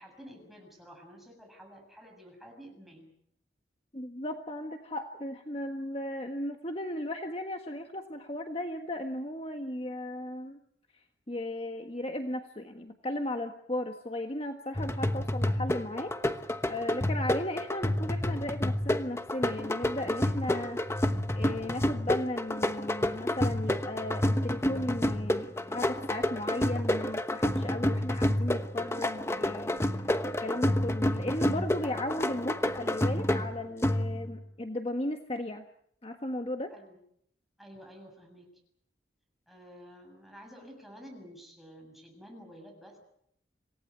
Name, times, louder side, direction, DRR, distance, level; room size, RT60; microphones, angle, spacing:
voice 1, 0.0-3.1 36.7-37.0 37.6-38.6 39.5-43.0, equal, ahead, 1 dB, 7.3 m, -51 dB
voice 2, 3.9-10.6 11.3-16.1 16.7-20.8 21.3-30.1 30.4-35.6 36.0-36.7, left 1 dB, 35° left, 5 dB, 1.5 m, -36 dB
sound 1, 14.8-34.4, left 1 dB, 15° left, 1.1 m, -29 dB
27.5 x 18.5 x 8.1 m, 0.71 s
head